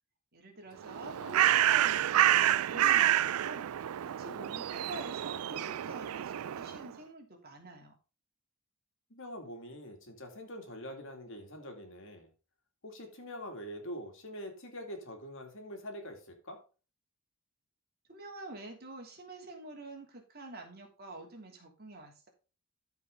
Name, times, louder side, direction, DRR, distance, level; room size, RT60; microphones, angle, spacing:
voice 1, 0.3-7.9 18.1-22.3, right 2 dB, 45° right, 2 dB, 3.1 m, -47 dB
Bird, 0.8-6.9, right 12 dB, 80° right, 0.4 m, -28 dB
voice 2, 0.9-1.5 9.1-12.3 12.8-16.6, equal, 60° left, 4 dB, 2.6 m, -45 dB
13.5 x 5.4 x 3.9 m, 0.33 s
head